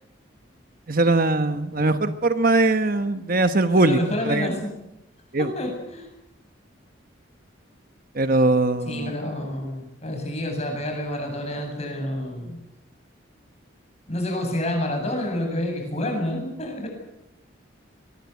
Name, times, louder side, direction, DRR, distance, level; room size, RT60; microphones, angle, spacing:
voice 1, 0.9-4.5 5.3-5.5 8.1-9.1, right 2 dB, 45° right, 9 dB, 1.2 m, -21 dB
voice 2, 3.7-4.7 5.4-6.1 8.9-12.6 14.1-16.9, left 1 dB, 30° left, 3 dB, 8.0 m, -28 dB
23.5 x 21.0 x 8.3 m, 0.87 s
head